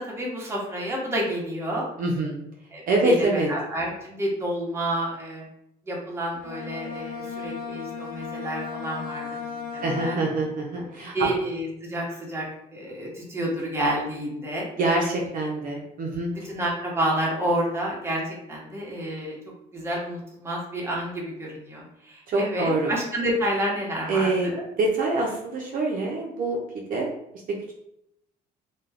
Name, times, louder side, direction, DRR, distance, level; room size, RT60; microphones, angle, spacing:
voice 1, 0.0-1.9 2.7-5.4 5.9-10.2 11.1-12.5 12.7-14.7 16.4-19.4 19.7-24.6, right 1 dB, 15° right, -3 dB, 0.9 m, -29 dB
voice 2, 2.0-2.4 2.9-3.5 9.8-11.1 14.8-16.3 22.3-22.9 24.1-24.5 24.8-26.6 26.9-27.1, right 2 dB, 55° right, -1 dB, 0.6 m, -25 dB
Bowed string instrument, 6.3-10.6, left 5 dB, 55° left, 0.6 m, -36 dB
2.3 x 2.2 x 3.3 m, 0.78 s
cardioid pair, 110°, 17 cm